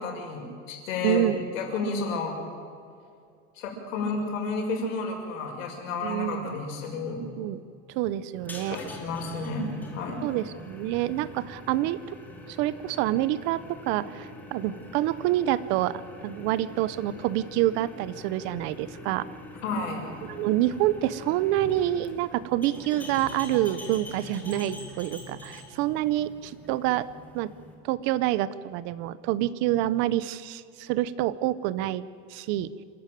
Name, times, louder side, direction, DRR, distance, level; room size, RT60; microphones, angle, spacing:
voice 1, 0.0-1.3 1.5-2.3 3.6-7.2 8.7-10.2 19.6-20.0, left 3 dB, 85° left, 1 dB, 6.6 m, -31 dB
voice 2, 1.0-1.4 6.0-6.5 7.4-7.6 7.9-8.8 10.2-12.2 12.5-19.3 20.2-27.1 27.3-27.5 27.8-32.7, right 14 dB, 30° right, 16 dB, 0.6 m, -27 dB
sound 1, 8.3-27.7, left 1 dB, 5° left, 2.4 m, -44 dB
28.0 x 12.5 x 9.1 m, 2.4 s
supercardioid pair, 180°, 38 cm